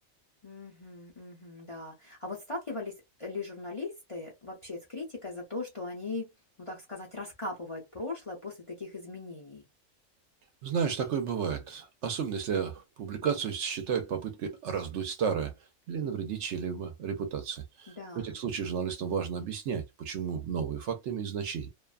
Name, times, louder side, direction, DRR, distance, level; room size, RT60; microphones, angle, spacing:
voice 1, 0.4-6.3 6.6-9.6 17.9-18.4, left 3 dB, 35° left, 0.6 m, -39 dB
voice 2, 10.6-15.5 15.9-21.7, right 7 dB, 65° right, 0.9 m, -32 dB
2.6 x 2.2 x 2.4 m
omnidirectional pair, 1.4 m